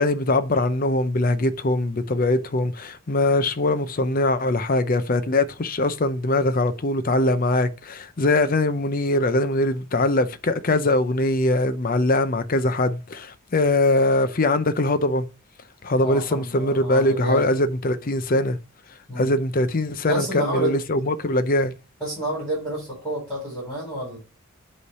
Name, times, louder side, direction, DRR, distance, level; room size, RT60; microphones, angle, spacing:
voice 1, 0.0-15.3 15.8-18.6 19.2-21.7, left 2 dB, 40° left, 0.6 m, -22 dB
voice 2, 16.0-17.5 19.1-19.3 20.1-20.8 22.0-24.2, right 1 dB, 5° left, 4.1 m, -29 dB
8.3 x 3.2 x 5.4 m
head